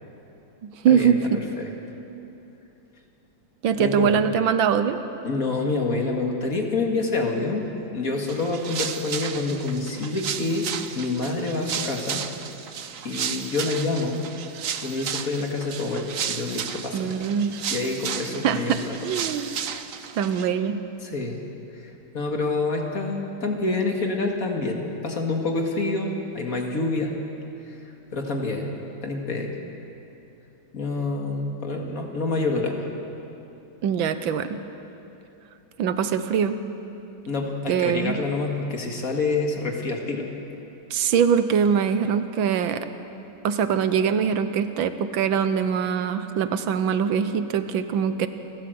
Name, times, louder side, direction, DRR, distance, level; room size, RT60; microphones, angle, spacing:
voice 1, 0.6-1.4 3.6-5.0 16.9-17.6 18.4-19.5 20.2-20.8 33.8-34.6 35.8-36.6 37.7-38.2 40.9-42.8 43.4-48.3, right 7 dB, 85° right, 11 dB, 1.7 m, -23 dB
voice 2, 3.8-4.2 5.2-10.7 10.9-12.2 13.0-14.2 14.8-17.2 17.7-19.0 21.0-21.4 21.7-27.1 27.7-27.8 28.1-28.7 29.0-29.5 30.7-32.9 37.3-40.3, left 3 dB, 45° left, 2 dB, 2.4 m, -27 dB
sound 1, 8.2-20.5, right 8 dB, 55° right, 1.0 m, -33 dB
28.5 x 13.0 x 7.9 m, 2.9 s
omnidirectional pair, 2.1 m